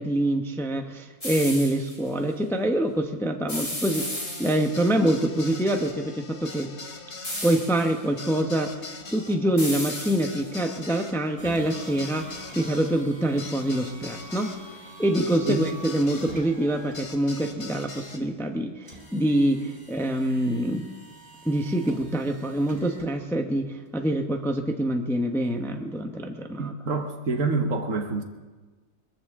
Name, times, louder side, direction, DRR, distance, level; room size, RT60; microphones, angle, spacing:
voice 1, 0.0-6.7 7.4-8.8 9.1-14.5 15.0-20.9 21.4-26.7, right 1 dB, ahead, 3 dB, 0.8 m, -25 dB
sound 1, 1.2-2.0 3.5-4.9 7.2-8.0 9.6-10.6, left 1 dB, 20° left, 3.6 m, -34 dB
sound 2, 3.9-16.4 16.9-18.2, left 3 dB, 45° left, 1.6 m, -42 dB
sound 3, 11.4-26.0, right 1 dB, 35° right, 3.7 m, -47 dB
voice 2, 26.6-28.2, right 3 dB, 55° right, 4 dB, 1.7 m, -27 dB
23.5 x 14.5 x 3.7 m, 1.3 s
omnidirectional pair, 1.6 m